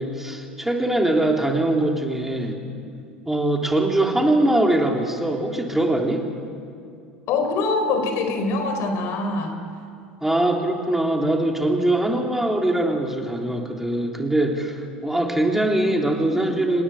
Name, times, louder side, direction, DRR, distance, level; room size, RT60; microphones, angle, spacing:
voice 1, 0.0-2.6 3.3-6.2 10.2-16.8, right 1 dB, 5° right, 1 dB, 3.4 m, -22 dB
voice 2, 7.3-9.5, left 3 dB, 50° left, 6 dB, 4.3 m, -23 dB
27.0 x 20.0 x 8.5 m, 2.5 s
figure-of-eight pair, 75°, 6 cm